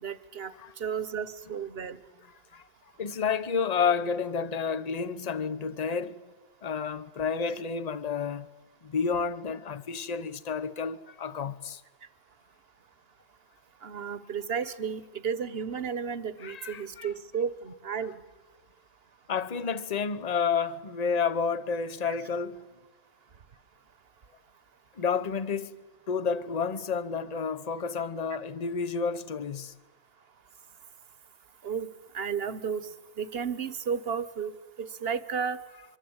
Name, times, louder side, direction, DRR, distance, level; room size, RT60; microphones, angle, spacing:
voice 1, 0.0-2.0 13.8-18.2 22.0-22.1 31.6-31.9 32.1-32.9 33.2-35.6, right 6 dB, 50° right, 1.2 m, -33 dB
voice 2, 3.0-6.2 6.6-8.5 8.8-11.8 16.4-17.1 19.3-22.7 24.9-25.8 26.1-29.7, left 6 dB, 35° left, 0.9 m, -30 dB
25.0 x 24.0 x 8.8 m
omnidirectional pair, 1.4 m